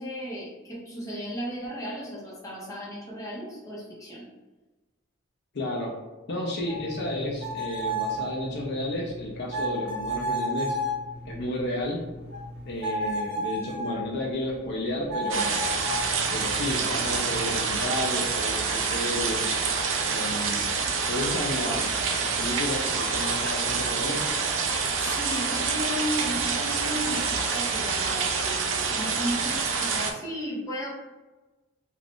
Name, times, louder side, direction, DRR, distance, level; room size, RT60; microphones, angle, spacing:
voice 1, 0.0-4.2 24.7-30.9, equal, 15° left, -6 dB, 0.9 m, -35 dB
voice 2, 5.5-6.0 6.3-10.8 11.2-12.0 12.7-15.6 16.3-19.5 20.0-20.6 21.1-24.3, left 1 dB, 60° left, -2 dB, 0.5 m, -32 dB
sound 1, 6.7-14.1 15.1-18.0, right 1 dB, 55° right, 0.8 m, -33 dB
sound 2, 15.3-30.1, right 5 dB, 75° right, 0.4 m, -27 dB
2.5 x 2.3 x 3.4 m, 1.2 s
head